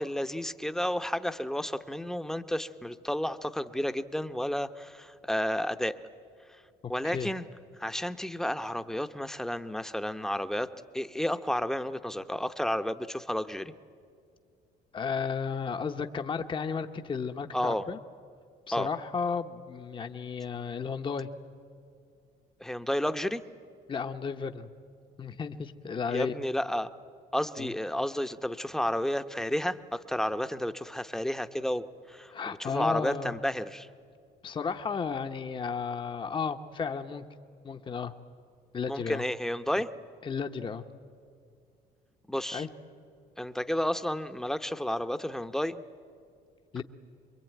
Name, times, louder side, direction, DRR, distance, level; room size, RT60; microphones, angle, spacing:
voice 1, 0.0-6.0 6.9-7.4 7.8-13.7 17.5-17.8 18.7-18.9 22.6-23.4 26.1-26.9 27.3-32.3 32.6-33.9 38.9-39.9 42.3-42.7 43.4-45.8, left 1 dB, 5° left, 10 dB, 0.8 m, -31 dB
voice 2, 14.9-18.0 18.7-21.3 23.9-24.7 25.2-26.3 27.6-27.7 32.3-33.4 34.4-37.3 37.6-38.1 38.7-39.2 40.2-40.8 42.5-42.7 46.7-46.8, left 6 dB, 30° left, 7 dB, 0.9 m, -33 dB
25.5 x 22.5 x 9.2 m, 2.4 s
cardioid pair, 110°, 17 cm